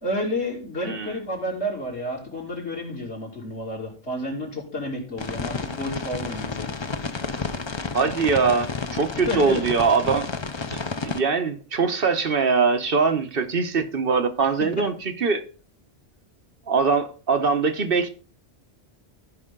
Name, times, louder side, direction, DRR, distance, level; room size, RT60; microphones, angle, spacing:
voice 1, 0.0-6.7 9.2-9.6, left 1 dB, 85° left, 3.3 m, -30 dB
sound 1, 5.2-11.2, left 4 dB, 30° left, 0.6 m, -31 dB
voice 2, 7.9-10.3 10.7-15.4 16.7-18.1, right 5 dB, 60° right, 1.2 m, -22 dB
14.5 x 5.5 x 3.7 m
omnidirectional pair, 1.1 m